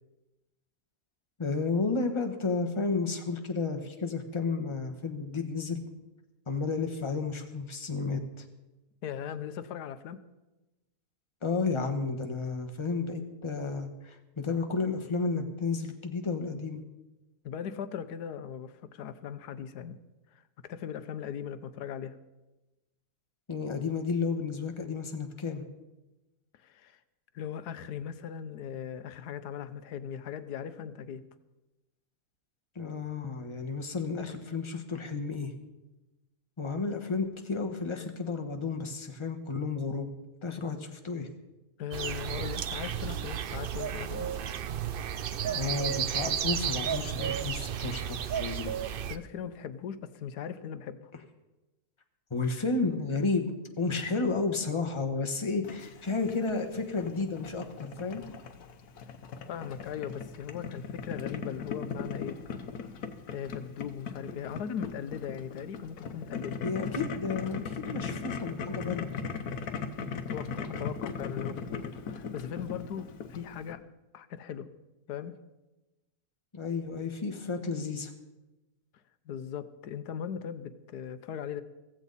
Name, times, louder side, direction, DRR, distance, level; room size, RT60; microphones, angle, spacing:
voice 1, 1.4-5.8 6.5-8.4 11.4-16.8 23.5-25.6 32.7-35.5 36.6-40.1 40.4-41.3 45.4-48.7 52.3-58.2 66.6-69.1 76.5-78.1, left 4 dB, 20° left, 4 dB, 1.2 m, -32 dB
voice 2, 9.0-10.2 17.4-20.0 20.6-22.2 26.6-27.0 27.3-31.2 41.8-44.4 49.1-51.0 59.5-62.4 63.3-66.6 70.1-73.8 74.1-74.7 75.1-75.4 79.3-81.6, left 8 dB, 90° left, 12 dB, 1.4 m, -39 dB
sound 1, 41.9-49.2, right 9 dB, 75° right, 0.5 m, -33 dB
Boiling, 55.6-73.7, left 5 dB, 70° left, 1.5 m, -39 dB
15.5 x 15.5 x 4.1 m, 1.0 s
omnidirectional pair, 1.6 m